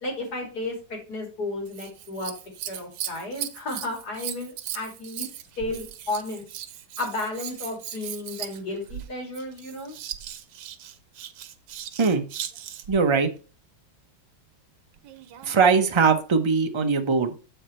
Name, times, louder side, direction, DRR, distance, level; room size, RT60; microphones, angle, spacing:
voice 1, 0.0-2.3 2.7-5.3 5.6-6.4 7.0-9.9, left 2 dB, 60° left, 0 dB, 3.2 m, -33 dB
Scissors, 1.7-13.0 15.0-15.6 16.3-16.4, right 11 dB, 85° right, 1.4 m, -38 dB
voice 2, 12.9-13.3 15.5-17.3, right 5 dB, 30° right, 6 dB, 0.5 m, -21 dB
7.8 x 4.9 x 4.4 m, 0.35 s
omnidirectional pair, 1.9 m